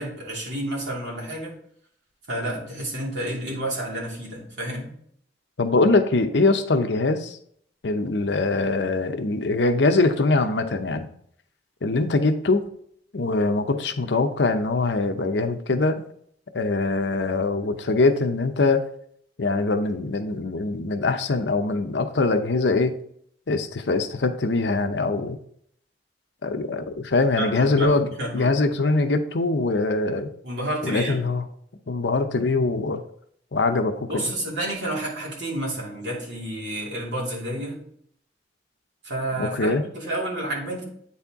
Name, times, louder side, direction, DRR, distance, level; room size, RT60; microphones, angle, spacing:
voice 1, 0.0-1.5 2.3-4.9 27.4-28.6 30.4-31.2 34.1-37.8 39.0-40.8, right 1 dB, 75° right, -4 dB, 2.8 m, -30 dB
voice 2, 5.6-7.4 7.8-11.1 11.8-12.6 13.1-16.0 16.5-18.8 19.4-22.9 23.5-25.4 26.4-28.1 28.3-30.3 30.8-31.4 31.9-33.0 33.5-34.2 39.4-39.8, left 3 dB, 80° left, 8 dB, 0.7 m, -22 dB
8.8 x 4.3 x 3.6 m, 0.66 s
head